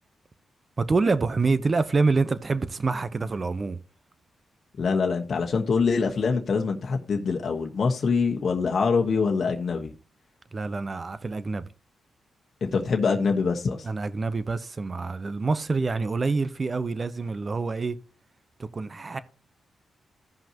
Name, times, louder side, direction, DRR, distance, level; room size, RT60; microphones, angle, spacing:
voice 1, 0.8-3.8 10.5-11.7 13.8-18.0 18.7-19.2, right 3 dB, 40° right, 0.9 m, -26 dB
voice 2, 4.8-9.9 12.6-13.8, left 5 dB, 60° left, 1.3 m, -24 dB
16.0 x 5.6 x 3.0 m
cardioid pair, 70°, 0 cm